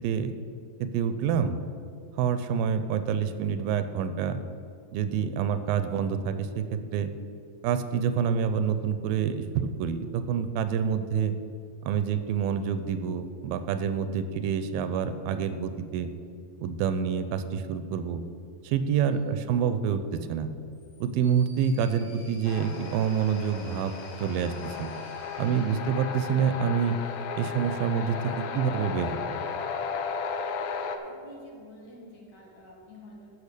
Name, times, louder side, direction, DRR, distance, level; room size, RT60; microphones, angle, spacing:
voice 1, 0.0-0.3 0.8-1.6 2.2-4.4 4.9-7.1 7.6-11.3 11.9-16.1 16.6-18.2 18.6-20.5 21.0-23.9 24.2-24.9 25.4-27.0 27.4-29.4, right 7 dB, 90° right, 11 dB, 2.4 m, -27 dB
voice 2, 19.1-19.4 31.0-33.3, left 2 dB, 60° left, -2 dB, 2.6 m, -48 dB
sound 1, 20.7-26.9, left 1 dB, 40° left, 3.8 m, -52 dB
sound 2, 22.4-31.0, left 6 dB, 85° left, 1.7 m, -35 dB
13.5 x 4.9 x 6.6 m, 2.4 s
omnidirectional pair, 4.1 m